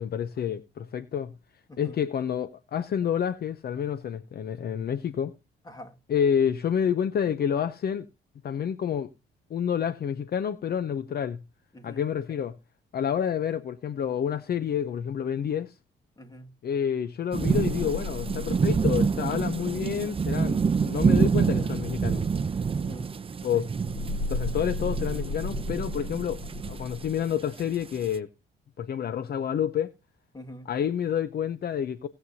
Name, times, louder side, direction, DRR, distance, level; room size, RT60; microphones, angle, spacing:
voice 1, 0.0-1.3 1.8-5.3 6.1-8.1 8.4-9.1 9.5-11.4 11.8-12.6 12.9-15.7 16.6-22.3 23.4-23.7 24.3-26.4 26.6-28.3 28.8-29.9 30.7-32.1, left 8 dB, 50° left, 0.7 m, -29 dB
voice 2, 11.7-12.0 16.2-16.5 22.7-23.1 23.5-23.7 30.3-30.7, left 1 dB, 20° left, 2.0 m, -44 dB
sound 1, 17.3-28.2, right 5 dB, 25° right, 0.6 m, -27 dB
sound 2, 17.5-21.0 23.8-27.1, left 2 dB, 80° left, 1.2 m, -35 dB
18.5 x 7.9 x 2.7 m
cardioid pair, 90°, 20 cm